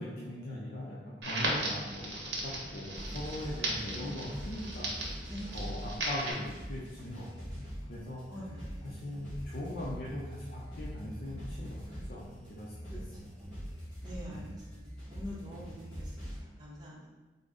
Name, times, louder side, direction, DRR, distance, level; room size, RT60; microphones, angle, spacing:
voice 1, 0.0-4.9 5.5-7.3 7.5-8.2 8.8-12.7 14.3-14.5, left 1 dB, 55° left, -6 dB, 0.5 m, -40 dB
Crackle, 1.2-6.3, right 1 dB, 75° right, 0.8 m, -37 dB
sound 1, 2.9-16.4, equal, 5° left, 1.4 m, -43 dB
voice 2, 5.3-6.1 8.3-9.0 12.9-13.2 14.0-17.1, equal, 25° right, -6 dB, 0.7 m, -46 dB
3.8 x 2.0 x 3.6 m, 1.2 s
head